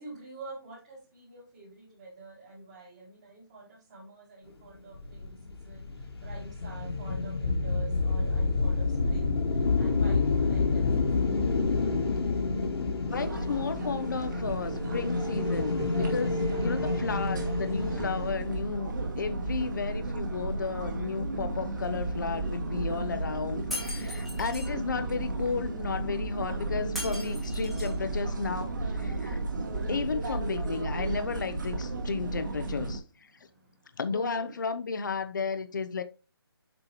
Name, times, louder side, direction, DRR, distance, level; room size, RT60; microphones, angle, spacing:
voice 1, 0.0-5.9 6.2-9.4 9.8-11.1 24.6-25.0 34.1-34.5, right 2 dB, 20° right, 1.7 m, -46 dB
sound 1, 4.9-18.3, left 4 dB, 75° left, 1.7 m, -29 dB
voice 2, 13.1-29.4 29.9-33.3 34.0-36.0, left 5 dB, 50° left, 0.7 m, -33 dB
sound 2, 13.1-33.0, right 2 dB, 50° right, 2.1 m, -34 dB
Shatter, 23.7-24.7 27.0-28.0, left 2 dB, ahead, 0.9 m, -38 dB
6.8 x 5.5 x 3.0 m
hypercardioid pair, 175°, 13 cm